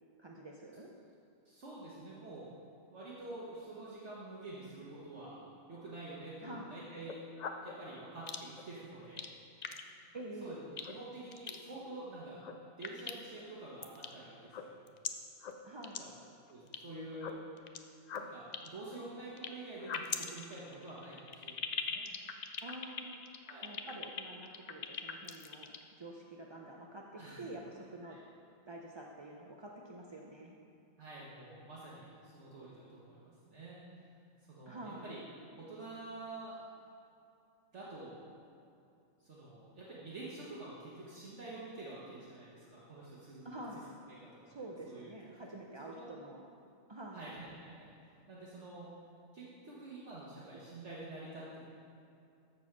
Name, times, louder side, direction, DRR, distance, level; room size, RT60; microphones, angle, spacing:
voice 1, 0.2-0.9 6.4-6.7 10.1-10.6 15.6-16.0 22.6-23.2 23.6-28.2 28.7-30.6 34.7-35.1 43.4-43.8 44.5-46.5 46.9-47.3, right 1 dB, 40° right, -1 dB, 0.3 m, -47 dB
voice 2, 1.4-2.5 2.9-5.4 5.7-7.2 7.6-9.8 10.4-10.6 10.9-12.4 12.8-14.9 16.0-16.1 16.5-17.4 18.2-22.1 23.5-23.7 27.1-27.5 28.0-28.2 31.0-33.8 34.5-35.2 35.6-36.6 37.7-38.2 39.2-43.4 44.1-44.5 44.9-45.1 45.9-46.0 47.1-48.9 49.3-51.6, right 2 dB, 60° right, -6 dB, 1.6 m, -48 dB
sound 1, 6.9-7.7 8.3-8.6 9.0-9.3 9.6-9.8 10.2-10.3 10.8-10.9 11.3-11.6 12.2-12.5 12.8-13.4 13.8-14.1 14.4-15.1 15.4-15.5 15.8-16.0 16.2-16.8 17.1-17.8 18.1-19.5 19.8-25.8, left 7 dB, 60° left, 0.4 m, -40 dB
14.0 x 4.7 x 5.9 m, 2.6 s
omnidirectional pair, 1.4 m